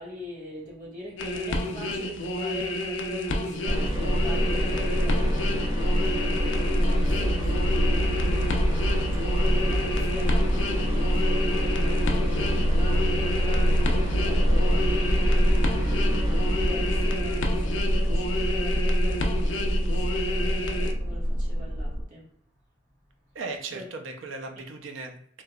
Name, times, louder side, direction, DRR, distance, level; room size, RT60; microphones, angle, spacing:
voice 1, 0.0-5.7 6.8-8.5 9.1-15.6 15.9-22.3 23.7-23.8, left 1 dB, 40° right, -6 dB, 1.3 m, -42 dB
sound 1, 1.2-20.9, left 1 dB, 65° left, 0.4 m, -30 dB
sound 2, 3.6-22.0, equal, 25° right, 0.8 m, -25 dB
voice 2, 23.3-25.4, right 3 dB, 75° right, 4 dB, 0.6 m, -37 dB
3.2 x 2.8 x 2.3 m, 0.65 s
head